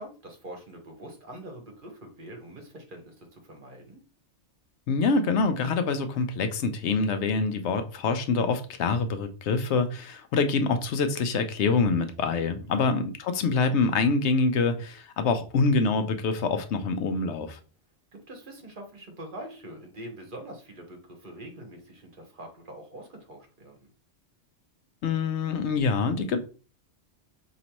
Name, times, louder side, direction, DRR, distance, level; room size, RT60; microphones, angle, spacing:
voice 1, 0.0-4.0 12.9-13.0 18.1-23.9, right 1 dB, 50° right, 1.2 m, -44 dB
voice 2, 4.9-17.6 25.0-26.5, left 4 dB, 90° left, 0.9 m, -25 dB
5.1 x 3.0 x 2.9 m
omnidirectional pair, 1.1 m